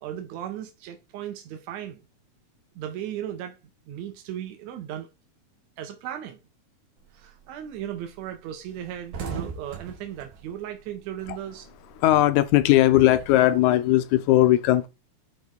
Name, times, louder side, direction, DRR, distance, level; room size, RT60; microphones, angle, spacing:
voice 1, 0.0-2.0 2.8-3.6 3.9-5.1 5.8-6.4 7.1-11.6, right 10 dB, 75° right, 2.1 m, -36 dB
sound 1, 7.0-7.4 7.7-7.9 8.2-8.3 8.6-11.6 11.9-13.6, right 5 dB, 90° right, 2.9 m, -39 dB
voice 2, 12.0-14.9, left 15 dB, 85° left, 2.0 m, -19 dB
9.1 x 3.1 x 3.8 m
omnidirectional pair, 3.4 m